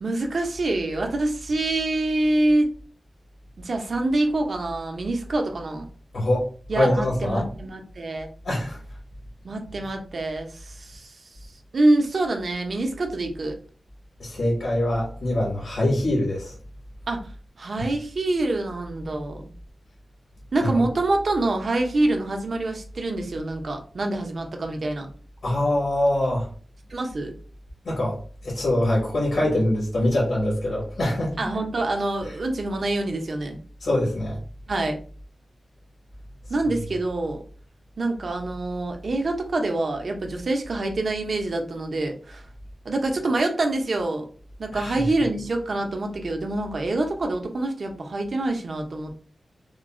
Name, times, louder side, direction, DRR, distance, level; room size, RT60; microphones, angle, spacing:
voice 1, 0.0-2.7 3.6-5.9 6.7-8.3 9.4-11.2 11.7-13.6 17.1-17.3 17.6-19.5 20.5-25.1 26.9-27.3 31.4-33.6 34.7-35.0 36.5-37.4 38.0-42.4 42.8-44.3 44.6-49.2, right 2 dB, 50° right, 4 dB, 0.5 m, -26 dB
voice 2, 6.1-6.5 6.7-7.4 8.4-8.8 14.2-16.6 17.8-17.9 20.6-20.8 25.4-26.5 27.8-31.5 33.8-34.4 44.7-45.0, left 1 dB, 80° left, -5 dB, 1.3 m, -24 dB
3.6 x 2.0 x 2.4 m, 0.41 s
wide cardioid pair, 150°, 0 cm